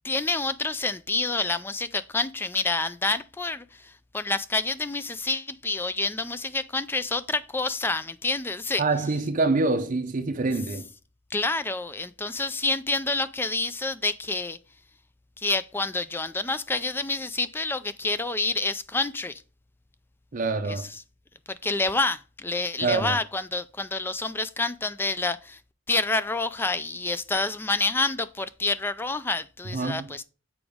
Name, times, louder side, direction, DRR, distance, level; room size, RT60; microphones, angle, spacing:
voice 1, 0.0-8.8 11.3-14.6 15.4-19.4 20.7-20.9 21.6-25.6 25.9-30.2, left 3 dB, 10° left, 0.3 m, -28 dB
voice 2, 8.8-10.9 20.3-20.9 22.8-23.2 29.7-30.1, right 3 dB, 40° right, 0.5 m, -26 dB
7.0 x 4.8 x 3.5 m
head